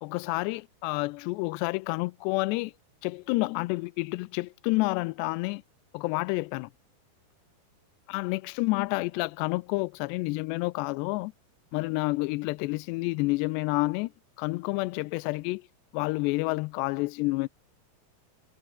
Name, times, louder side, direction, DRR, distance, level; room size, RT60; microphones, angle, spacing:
voice 1, 0.0-2.7 3.0-5.6 5.9-6.7 8.1-11.3 11.7-14.1 14.4-15.7 15.9-17.5, left 24 dB, 90° left, 2.7 m, -29 dB
omnidirectional pair, 4.8 m